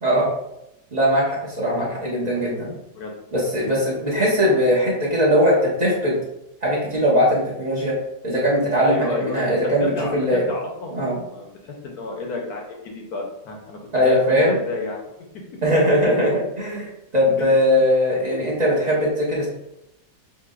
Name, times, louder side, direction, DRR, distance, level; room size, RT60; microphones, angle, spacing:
voice 1, 0.9-2.7 3.3-6.2 6.6-8.0 8.2-10.5 10.9-11.2 13.9-14.6 15.6-19.5, equal, 30° right, -6 dB, 1.0 m, -20 dB
voice 2, 8.8-11.0 11.3-15.0, left 3 dB, 65° left, 0 dB, 1.2 m, -31 dB
7.4 x 2.6 x 2.4 m, 0.87 s
omnidirectional pair, 2.0 m